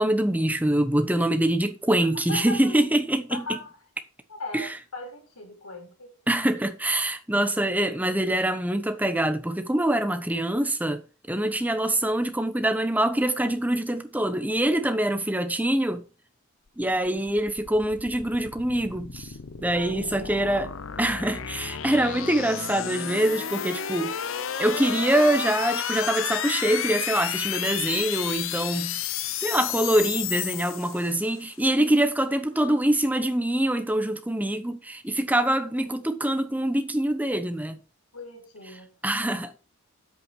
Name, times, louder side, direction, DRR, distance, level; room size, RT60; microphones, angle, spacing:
voice 1, 0.0-3.6 4.5-4.8 6.3-11.0 11.3-16.0 16.8-19.3 19.6-24.1 24.6-29.0 29.4-37.8 39.0-39.6, right 1 dB, 5° right, 1.0 m, -24 dB
voice 2, 2.3-2.7 3.3-3.7 4.3-6.2 19.7-20.3 35.8-36.0 38.1-38.9, left 2 dB, 85° left, 4.7 m, -38 dB
sound 1, 16.9-31.4, left 9 dB, 60° left, 0.7 m, -32 dB
9.3 x 8.2 x 4.8 m
head